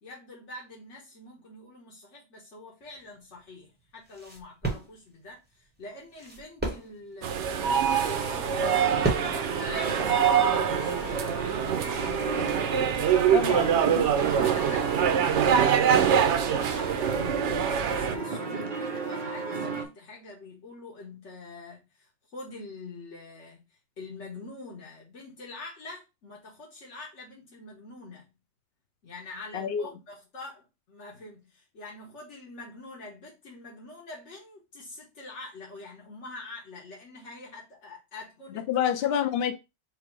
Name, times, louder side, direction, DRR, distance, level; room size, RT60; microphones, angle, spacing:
voice 1, 0.0-12.7 13.8-23.6 24.0-28.3 29.0-39.0, left 2 dB, 85° left, 1.5 m, -45 dB
sound 1, 2.8-11.1, right 2 dB, 10° right, 1.0 m, -36 dB
sound 2, 7.2-18.2, right 8 dB, 80° right, 0.9 m, -25 dB
sound 3, 7.9-19.8, right 4 dB, 50° right, 0.8 m, -34 dB
voice 2, 13.3-13.8 29.5-29.9 38.5-39.6, left 9 dB, 65° left, 0.8 m, -27 dB
4.7 x 2.0 x 4.6 m
omnidirectional pair, 1.2 m